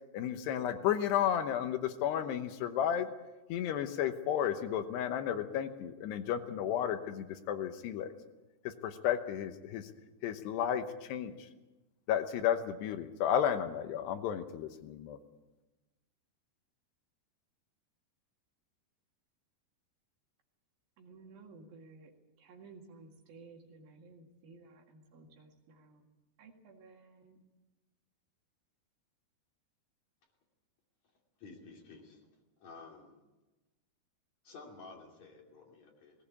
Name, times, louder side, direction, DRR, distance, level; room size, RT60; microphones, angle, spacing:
voice 1, 0.1-3.1 3.5-8.1 8.8-9.9 10.2-10.8 11.1-11.3 12.1-15.2, left 9 dB, 80° left, 8 dB, 3.1 m, -32 dB
voice 2, 21.0-22.1 22.4-26.1 26.4-27.4, right 3 dB, 60° right, 2 dB, 3.7 m, -55 dB
voice 3, 31.4-32.2 32.6-33.2 34.4-36.1, left 4 dB, 45° left, 0 dB, 3.7 m, -52 dB
19.0 x 18.0 x 8.5 m, 1.1 s
omnidirectional pair, 4.9 m